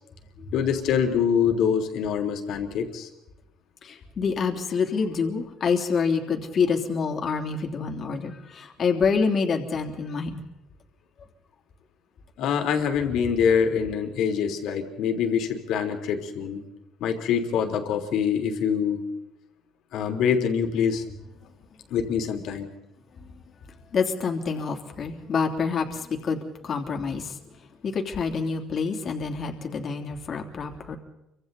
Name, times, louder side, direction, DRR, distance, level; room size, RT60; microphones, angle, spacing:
voice 1, 0.5-3.1 12.4-16.6 17.0-19.0 19.9-21.0 21.9-22.7, left 7 dB, 65° left, 4 dB, 3.4 m, -25 dB
voice 2, 3.8-10.4 23.9-27.4 27.8-31.0, left 5 dB, 40° left, 3 dB, 3.1 m, -27 dB
29.0 x 25.0 x 4.1 m, 0.90 s
cardioid pair, 120°, 0 cm